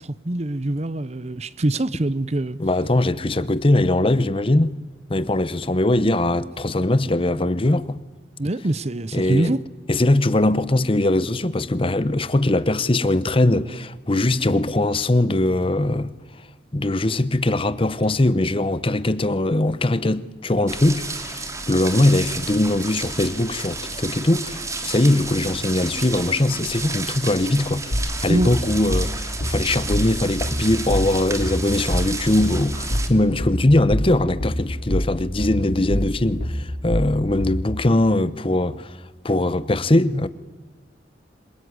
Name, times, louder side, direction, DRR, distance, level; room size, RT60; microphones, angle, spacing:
voice 1, 0.0-2.6 8.4-9.6 28.3-28.5, right 1 dB, 40° right, 0.8 m, -24 dB
voice 2, 2.6-4.8 5.1-8.0 9.1-9.6 9.9-16.1 16.7-39.0 39.2-40.3, left 1 dB, 30° left, 0.9 m, -21 dB
sound 1, 20.7-33.1, right 3 dB, 20° right, 2.4 m, -32 dB
sound 2, 27.9-37.7, equal, 75° left, 4.9 m, -25 dB
27.0 x 22.0 x 9.7 m
head